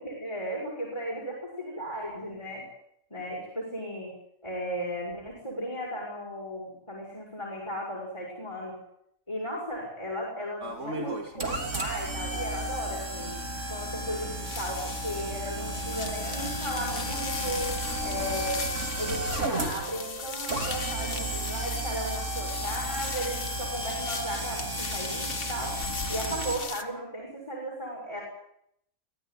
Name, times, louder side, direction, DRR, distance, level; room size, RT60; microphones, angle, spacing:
voice 1, 0.0-2.6 3.1-4.1 4.4-8.8 9.3-13.3 13.7-17.7 18.0-18.6 19.0-25.8 26.1-28.2, equal, 20° left, -3 dB, 6.8 m, -35 dB
sound 1, 10.6-26.6, right 1 dB, 60° right, 3.9 m, -33 dB
sound 2, 14.4-26.8, left 5 dB, 85° left, 2.1 m, -38 dB
Bowed string instrument, 16.6-21.4, right 8 dB, 40° right, 2.7 m, -45 dB
25.0 x 15.5 x 9.7 m, 0.74 s
omnidirectional pair, 1.4 m